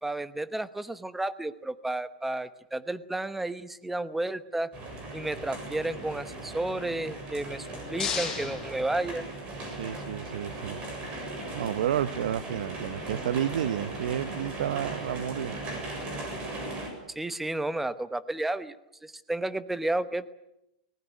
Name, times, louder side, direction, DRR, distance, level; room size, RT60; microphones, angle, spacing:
voice 1, 0.0-4.7 5.1-9.2 17.1-18.7 19.0-20.3, right 2 dB, 5° right, 1.0 m, -32 dB
sound 1, 4.7-16.9, right 2 dB, 30° right, 7.4 m, -38 dB
sound 2, 7.5-9.7, left 6 dB, 15° left, 5.7 m, -36 dB
voice 2, 9.8-10.8 11.5-15.6, right 10 dB, 80° right, 0.8 m, -31 dB
22.5 x 19.5 x 9.5 m
supercardioid pair, 150°, 4 cm